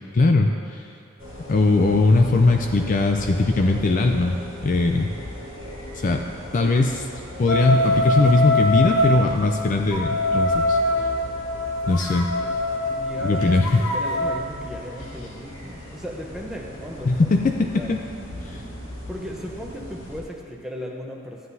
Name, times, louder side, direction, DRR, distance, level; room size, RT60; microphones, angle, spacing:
voice 1, 0.1-0.8 1.5-4.4 4.6-5.1 5.9-6.2 6.5-7.1 7.4-10.8 11.9-12.3 13.2-13.7 17.0-18.0 18.4-18.6, left 3 dB, 35° left, 4 dB, 0.4 m, -20 dB
sound 1, 1.2-20.2, left 1 dB, 65° left, 1.6 m, -39 dB
sound 2, 7.5-9.2 9.9-14.4, left 1 dB, 80° left, 1.0 m, -23 dB
voice 2, 12.8-17.3 17.6-18.0 19.1-21.5, equal, 5° right, -1 dB, 0.8 m, -36 dB
13.0 x 9.5 x 2.8 m, 2.6 s
head